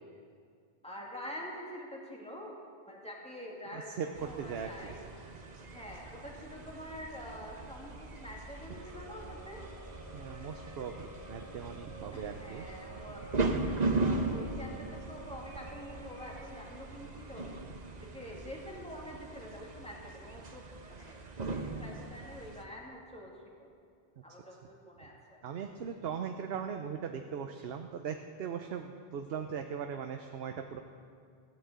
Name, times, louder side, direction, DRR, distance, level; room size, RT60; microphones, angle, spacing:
voice 1, 0.8-2.6 2.9-5.0 5.7-9.6 12.1-13.2 14.0-17.5 18.0-21.2 21.5-23.7 24.2-25.4, equal, 5° left, -3 dB, 2.5 m, -46 dB
voice 2, 3.7-4.1 4.4-4.9 10.1-12.7 25.4-30.8, right 7 dB, 70° right, 5 dB, 0.9 m, -39 dB
sound 1, 4.1-22.6, right 3 dB, 45° right, 1.1 m, -39 dB
sound 2, 8.7-17.6, right 2 dB, 70° left, 4.3 m, -51 dB
16.0 x 9.9 x 8.0 m, 2.3 s
omnidirectional pair, 1.1 m